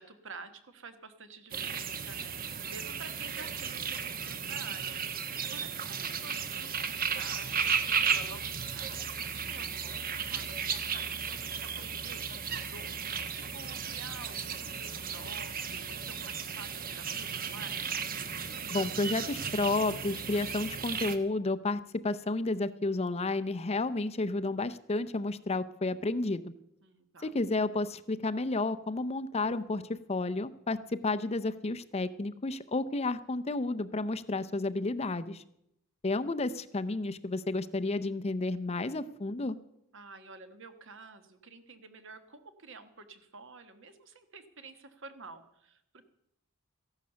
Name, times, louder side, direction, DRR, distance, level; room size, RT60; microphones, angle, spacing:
voice 1, 0.0-9.1 9.4-18.1 26.8-27.4 39.9-46.0, right 4 dB, 60° right, 9 dB, 1.5 m, -50 dB
sound 1, 1.5-21.2, right 6 dB, 45° right, 1.1 m, -35 dB
voice 2, 18.7-26.5 27.2-29.8 30.1-35.4 36.0-39.6, left 2 dB, 30° left, 12 dB, 0.6 m, -31 dB
14.5 x 11.5 x 6.9 m, 0.78 s
head